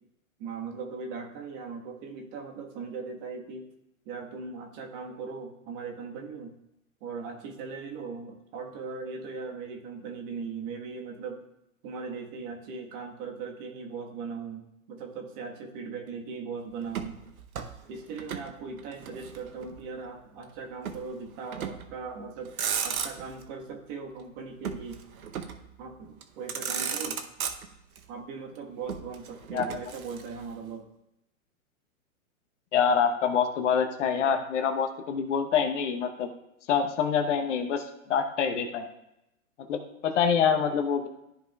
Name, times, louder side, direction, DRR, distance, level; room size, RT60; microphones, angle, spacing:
voice 1, 0.4-3.7 4.0-6.6 7.0-11.5 11.8-17.2 17.9-22.5 22.8-25.0 25.8-27.2 28.1-30.9, right 5 dB, 40° right, 2 dB, 1.4 m, -39 dB
Motor vehicle (road), 16.9-18.5 18.8-19.9 20.8-21.1 21.5-22.0 22.4-23.4 24.6-25.7 26.2-26.3 26.5-28.0 28.9-30.5, right 7 dB, 80° right, 0.9 m, -35 dB
voice 2, 32.7-36.3 36.7-38.9 39.6-41.1, left 7 dB, 55° left, 7 dB, 1.0 m, -26 dB
13.5 x 5.0 x 2.3 m, 0.86 s
hypercardioid pair, 120°, 43 cm